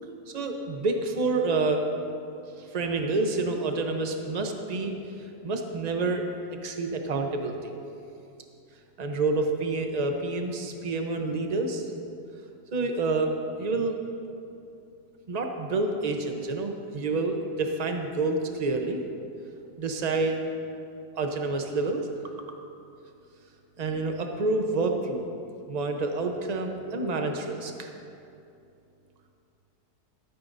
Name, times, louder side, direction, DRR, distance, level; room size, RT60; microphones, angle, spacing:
voice 1, 0.3-1.8 2.6-5.0 5.4-6.3 6.6-7.7 9.0-11.8 12.7-14.0 15.3-19.0 19.8-20.4 21.2-22.1 23.8-25.3 25.7-27.9, right 3 dB, 35° right, 4 dB, 0.7 m, -28 dB
15.5 x 13.0 x 2.7 m, 2.6 s
omnidirectional pair, 1.8 m